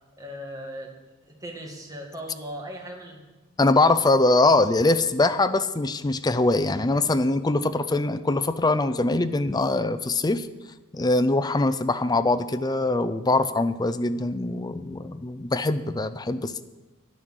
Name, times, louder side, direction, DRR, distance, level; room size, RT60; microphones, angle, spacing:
voice 1, 0.2-0.9 1.2-3.2, equal, 15° right, 0 dB, 2.1 m, -38 dB
voice 2, 3.6-10.5 10.9-16.6, left 2 dB, 20° left, 11 dB, 0.5 m, -23 dB
11.0 x 10.0 x 6.3 m, 1.1 s
head